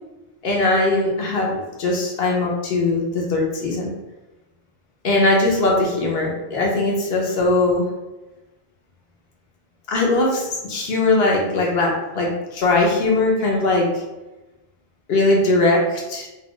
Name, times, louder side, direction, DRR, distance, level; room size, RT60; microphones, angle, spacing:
voice 1, 0.4-3.9 5.0-7.9 9.9-13.9 15.1-16.3, left 2 dB, 60° left, -1 dB, 0.8 m, -20 dB
2.7 x 2.1 x 2.9 m, 1.1 s
omnidirectional pair, 1.3 m